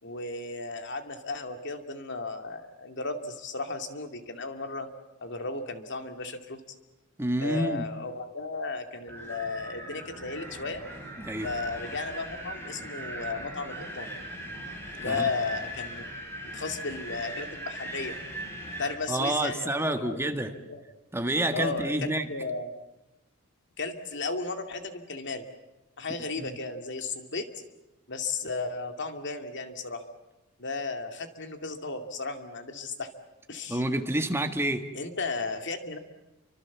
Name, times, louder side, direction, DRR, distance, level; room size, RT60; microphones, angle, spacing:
voice 1, 0.0-4.9 5.2-6.6 7.4-10.8 11.4-14.1 15.0-16.1 16.4-18.2 18.8-20.2 20.5-20.8 21.5-22.7 23.8-25.4 26.0-27.5 28.1-30.0 30.6-33.1 33.5-33.8 34.9-36.0, left 3 dB, 55° left, 2.4 m, -34 dB
voice 2, 7.2-7.8 11.2-11.5 15.0-15.3 19.1-20.5 21.1-22.2 26.4-26.5 33.7-34.9, right 1 dB, 10° right, 1.6 m, -28 dB
Wind, 9.1-19.0, right 1 dB, 10° left, 6.0 m, -39 dB
29.5 x 25.0 x 7.3 m
head